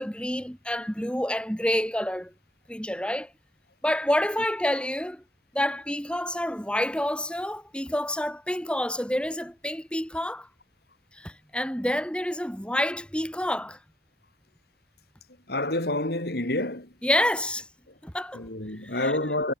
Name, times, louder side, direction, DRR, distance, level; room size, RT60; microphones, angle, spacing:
voice 1, 0.0-2.3 2.7-3.3 3.8-5.2 5.5-10.5 11.1-13.8 17.0-17.7 18.0-18.5 18.8-19.2, left 1 dB, 5° left, 5.1 m, -28 dB
voice 2, 15.5-16.9 18.3-19.5, left 1 dB, 55° left, 3.0 m, -28 dB
head